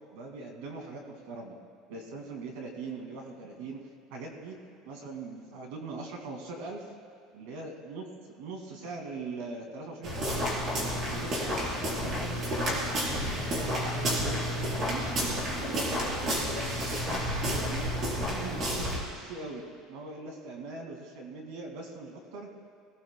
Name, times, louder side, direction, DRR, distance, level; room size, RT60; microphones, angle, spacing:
voice 1, 0.1-1.6 1.9-3.8 4.1-4.6 4.9-6.9 7.3-10.5 11.1-14.4 14.7-16.7 17.0-19.6 19.9-22.5, right 3 dB, 80° right, 1 dB, 2.2 m, -41 dB
sound 1, 10.0-19.0, equal, 35° right, 4.0 m, -30 dB
22.0 x 18.0 x 2.3 m, 2.2 s
cardioid pair, 145°, 0 cm